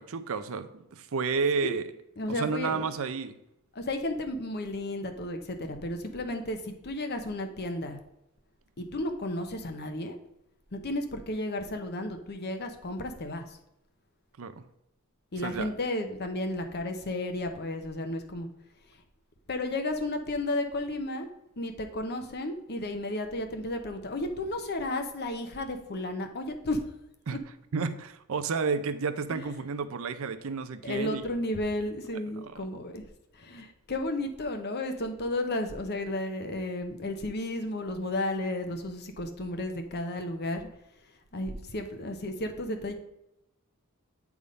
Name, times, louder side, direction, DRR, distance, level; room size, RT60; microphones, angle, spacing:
voice 1, 0.0-1.9 2.3-3.3 14.4-14.6 15.4-15.7 27.3-27.4 27.7-31.2 32.4-32.6, right 5 dB, 70° right, 10 dB, 0.6 m, -31 dB
voice 2, 2.2-2.9 3.7-8.0 8.8-10.2 10.7-13.5 15.3-18.5 19.5-21.3 21.6-26.8 29.3-29.4 30.8-33.0 33.4-40.7 41.3-42.9, left 1 dB, 50° left, 6 dB, 0.9 m, -33 dB
8.2 x 3.6 x 5.2 m, 0.85 s
head